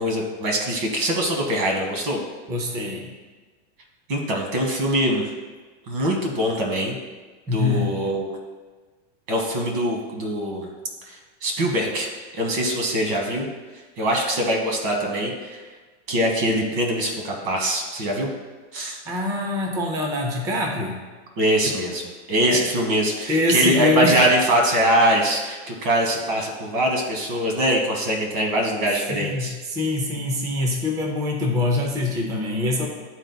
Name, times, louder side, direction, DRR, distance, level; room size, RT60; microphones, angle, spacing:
voice 1, 0.0-2.2 4.1-5.3 5.9-7.0 7.5-8.3 9.3-10.7 11.1-13.5 14.0-15.6 16.1-18.3 18.7-19.0 21.4-29.6, right 1 dB, 50° right, 1 dB, 1.3 m, -23 dB
voice 2, 2.5-3.1 7.5-8.0 19.1-21.0 22.5-22.6 23.3-24.2 29.1-32.9, left 2 dB, 10° right, 1 dB, 0.4 m, -24 dB
11.0 x 3.9 x 2.2 m, 1.3 s
supercardioid pair, 160°, 34 cm